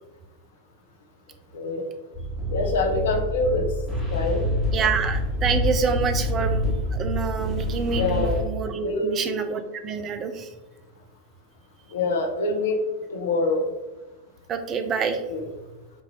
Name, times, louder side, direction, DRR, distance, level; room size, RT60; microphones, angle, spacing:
voice 1, 1.5-1.8 2.5-3.7 4.1-4.5 4.8-4.9 7.9-8.4 8.8-9.4 11.9-12.8 13.1-13.7 15.3-15.5, left 3 dB, 60° left, 3 dB, 0.7 m, -25 dB
sound 1, 2.1-8.4, left 1 dB, 10° right, 1.3 m, -27 dB
voice 2, 4.7-10.5 14.5-15.2, right 6 dB, 30° right, 8 dB, 0.4 m, -27 dB
5.4 x 2.6 x 3.1 m, 1.1 s
figure-of-eight pair, 90°, 0 cm